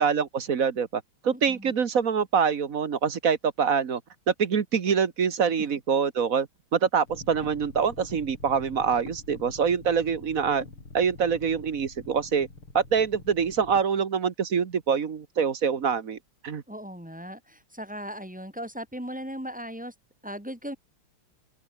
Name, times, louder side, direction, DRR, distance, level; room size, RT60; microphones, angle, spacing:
voice 1, 0.0-4.0 4.3-10.6 10.9-12.5 12.7-16.2 16.4-16.6, right 6 dB, 45° right, 1.5 m, -25 dB
voice 2, 1.3-1.7 16.7-19.9 20.2-20.8, equal, 5° right, 3.2 m, -37 dB
sound 1, 7.1-13.8, left 3 dB, 80° left, 7.1 m, -45 dB
open air
omnidirectional pair, 2.3 m